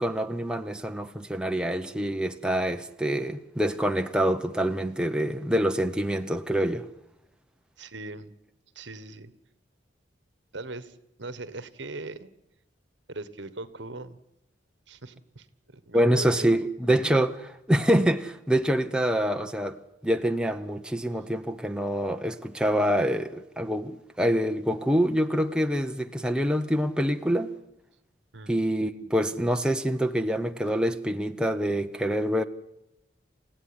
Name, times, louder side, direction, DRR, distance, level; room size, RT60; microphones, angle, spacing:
voice 1, 0.0-6.9 15.9-19.8 20.0-27.5 28.5-32.4, equal, 5° right, 0.9 m, -26 dB
voice 2, 7.8-8.3 8.7-9.3 10.5-12.3 13.1-14.2 14.9-16.5 28.3-28.5, right 2 dB, 70° right, 1.5 m, -40 dB
29.0 x 16.0 x 9.8 m
head